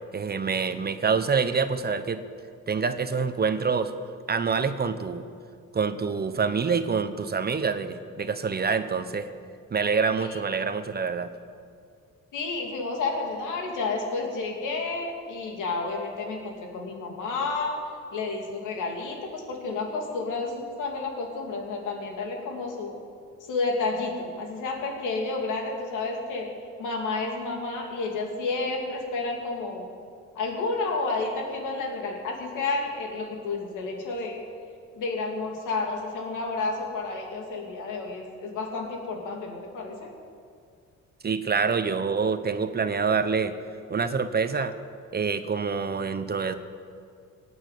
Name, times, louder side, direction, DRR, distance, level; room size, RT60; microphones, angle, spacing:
voice 1, 0.1-2.2 2.7-3.9 4.3-5.2 5.7-9.3 9.7-11.3 41.2-43.5 43.9-44.7 45.1-46.5, right 5 dB, 30° right, 10 dB, 1.0 m, -26 dB
voice 2, 12.3-17.8 18.1-23.0 23.4-26.5 26.8-29.8 30.3-34.4 34.9-40.1, left 3 dB, 85° left, 1 dB, 2.9 m, -31 dB
17.5 x 9.0 x 8.5 m, 2.3 s
cardioid pair, 90°, 30 cm